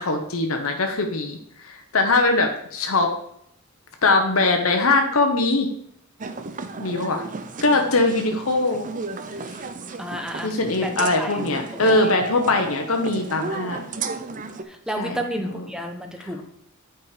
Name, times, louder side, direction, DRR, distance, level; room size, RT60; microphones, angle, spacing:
voice 1, 0.0-1.4 1.6-3.1 4.0-5.7 6.8-7.2 7.6-8.9 10.4-13.8 15.0-15.2, left 2 dB, 70° left, 4 dB, 1.0 m, -21 dB
sound 1, 6.2-14.6, right 3 dB, 40° right, 0.6 m, -34 dB
voice 2, 10.0-11.4 11.8-12.1 14.7-16.4, equal, 5° right, 4 dB, 1.0 m, -31 dB
8.7 x 5.1 x 4.9 m, 0.71 s
head